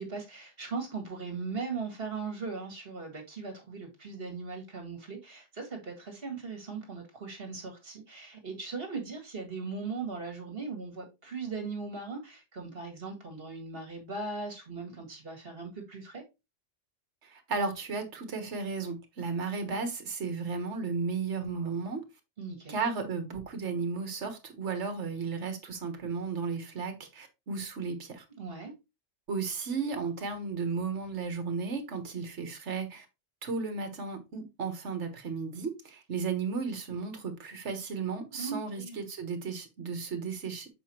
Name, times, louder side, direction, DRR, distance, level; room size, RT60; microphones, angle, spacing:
voice 1, 0.0-16.2 22.4-22.8 28.4-28.7 38.4-39.0, right 4 dB, 50° right, 2.1 m, -39 dB
voice 2, 17.2-22.0 22.7-28.2 29.3-33.0 33.4-40.7, right 4 dB, 65° right, 1.6 m, -34 dB
7.1 x 5.1 x 3.0 m
omnidirectional pair, 1.3 m